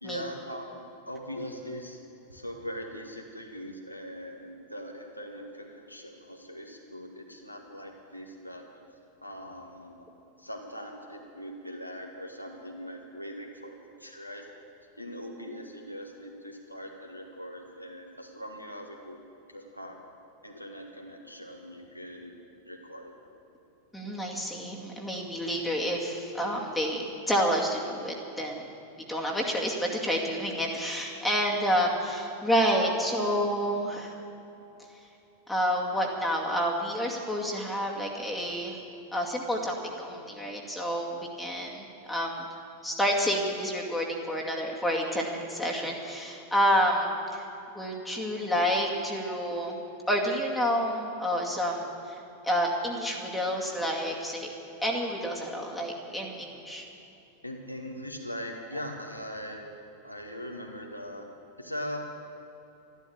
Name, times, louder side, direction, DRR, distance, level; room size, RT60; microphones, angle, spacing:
voice 1, 0.0-2.0 2.3-8.6 9.2-10.1 10.4-14.4 15.0-19.2 19.5-20.0 20.4-22.4 22.7-23.2 57.4-59.7 60.0-61.3 61.6-62.0, equal, 90° left, 1 dB, 1.7 m, -41 dB
voice 2, 23.9-28.6 29.0-34.2 35.5-38.8 39.1-42.5 42.8-47.5 47.7-49.8 50.1-52.2 52.4-54.5 54.8-56.9, equal, 5° left, -2 dB, 2.3 m, -29 dB
13.0 x 12.0 x 8.7 m, 3.0 s
figure-of-eight pair, 90°, 0 cm